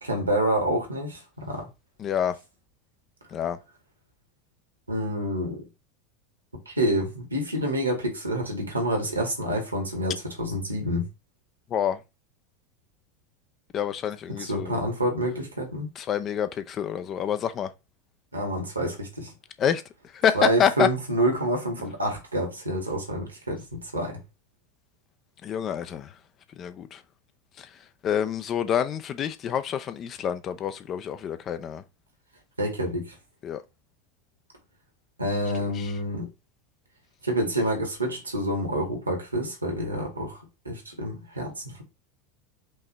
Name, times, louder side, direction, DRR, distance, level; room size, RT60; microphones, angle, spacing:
voice 1, 0.0-1.7 4.9-5.7 6.7-11.1 14.4-15.9 18.3-19.3 20.3-24.2 32.6-33.2 35.2-36.3 37.2-40.4 40.7-41.8, right 1 dB, 85° right, 1.8 m, -28 dB
voice 2, 2.0-2.3 3.3-3.6 11.7-12.0 13.7-14.8 16.0-17.7 19.6-19.8 20.1-20.9 25.4-26.1 26.6-27.0 27.6-27.7 28.0-31.8 33.4-33.6 35.7-35.9, left 9 dB, 35° left, 0.6 m, -27 dB
5.4 x 2.8 x 3.4 m
figure-of-eight pair, 80°, 0 cm